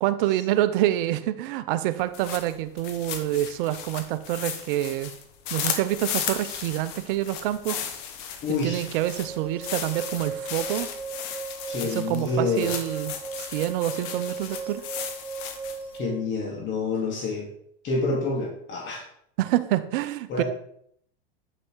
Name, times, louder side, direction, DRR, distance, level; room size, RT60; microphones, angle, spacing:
voice 1, 0.0-5.1 5.5-7.8 8.5-10.9 11.8-14.8 19.4-20.4, right 14 dB, 65° right, 13 dB, 0.8 m, -27 dB
sound 1, 2.0-16.0, left 8 dB, 60° left, 1.5 m, -35 dB
voice 2, 8.4-8.8 11.6-12.7 16.0-17.5 17.8-19.0 20.3-20.4, left 3 dB, 40° left, -1 dB, 2.4 m, -27 dB
sound 2, 9.2-16.2, right 5 dB, 5° right, 1.6 m, -37 dB
9.2 x 6.1 x 4.7 m, 0.68 s
hypercardioid pair, 105°, 29 cm